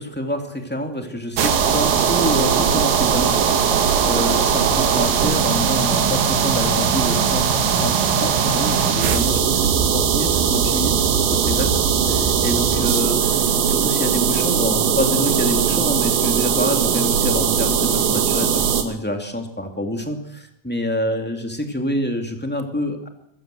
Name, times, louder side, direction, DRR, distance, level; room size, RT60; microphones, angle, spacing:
voice 1, 0.0-11.7 12.4-23.1, equal, 5° left, 4 dB, 1.1 m, -27 dB
sound 1, 1.4-18.8, right 7 dB, 80° right, 4.5 m, -19 dB
23.5 x 21.0 x 7.7 m, 0.75 s
omnidirectional pair, 5.0 m